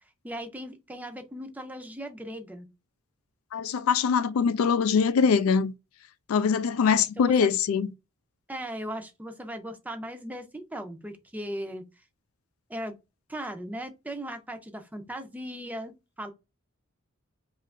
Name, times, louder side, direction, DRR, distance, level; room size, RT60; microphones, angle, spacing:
voice 1, 0.2-2.7 6.9-7.5 8.5-11.8 12.7-12.9 13.3-15.9 16.2-16.3, equal, 10° right, 0.5 m, -38 dB
voice 2, 3.5-5.7 6.3-7.9, left 6 dB, 85° left, 0.3 m, -23 dB
2.8 x 2.4 x 3.3 m
head